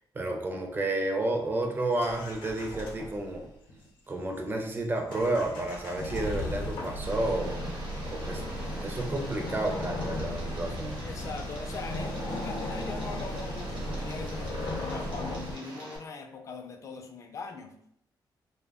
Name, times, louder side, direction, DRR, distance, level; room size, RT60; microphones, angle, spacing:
voice 1, 0.1-3.5 4.1-7.6 8.1-8.4 8.8-11.0, right 2 dB, 25° right, 2 dB, 0.4 m, -31 dB
sound 1, 1.9-3.4 3.7-3.8 4.1-4.6 5.1-15.6, left 1 dB, 85° left, 0.6 m, -36 dB
Tick, 7.0-16.0, right 2 dB, 80° right, 0.8 m, -45 dB
sound 2, 10.1-15.4, equal, 55° right, 0.7 m, -45 dB
voice 2, 11.0-17.7, left 4 dB, 40° left, 5 dB, 0.3 m, -41 dB
2.1 x 2.1 x 3.4 m, 0.72 s
wide cardioid pair, 145°, 8 cm